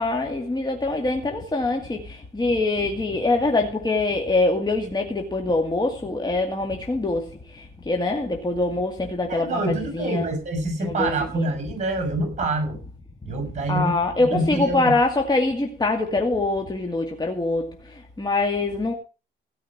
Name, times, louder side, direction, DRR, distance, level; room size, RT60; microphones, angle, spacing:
voice 1, 0.0-10.3 10.8-11.5 13.7-18.9, left 2 dB, 20° left, 2.2 m, -24 dB
voice 2, 9.3-12.8 13.2-15.0, right 2 dB, 35° right, 6.6 m, -26 dB
16.5 x 5.7 x 7.3 m
cardioid pair, 90°, 20 cm